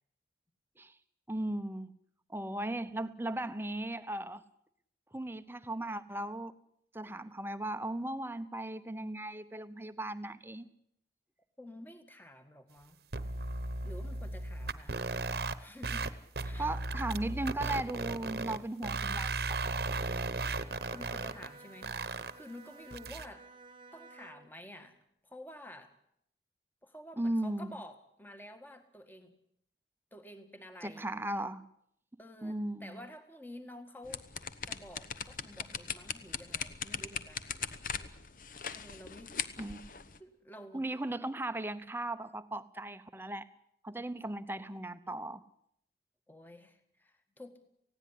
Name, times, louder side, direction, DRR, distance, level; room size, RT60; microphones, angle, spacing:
voice 1, 1.3-1.9 2.3-4.4 5.1-6.5 6.9-10.7 16.6-19.8 27.2-27.7 30.8-31.6 32.4-33.0 39.6-40.0 40.7-43.5 43.8-45.4, right 1 dB, 10° right, 13 dB, 0.8 m, -37 dB
voice 2, 11.6-13.0 13.8-15.0 15.6-16.2 16.4-16.7 20.9-23.5 23.9-25.0 25.2-25.9 26.8-29.3 30.1-31.1 32.2-34.2 34.6-37.5 38.7-39.3 40.2-40.9 46.3-47.6, left 1 dB, 10° left, 8 dB, 1.7 m, -50 dB
sound 1, 13.1-15.5 15.8-16.1 16.4-18.6 18.8-21.5 21.8-22.3 22.9-23.2, right 3 dB, 65° right, 1.0 m, -35 dB
Bowed string instrument, 20.4-24.6, right 3 dB, 30° right, 1.2 m, -54 dB
sound 2, 34.0-40.2, left 7 dB, 50° left, 1.0 m, -40 dB
19.0 x 16.5 x 10.0 m, 0.73 s
head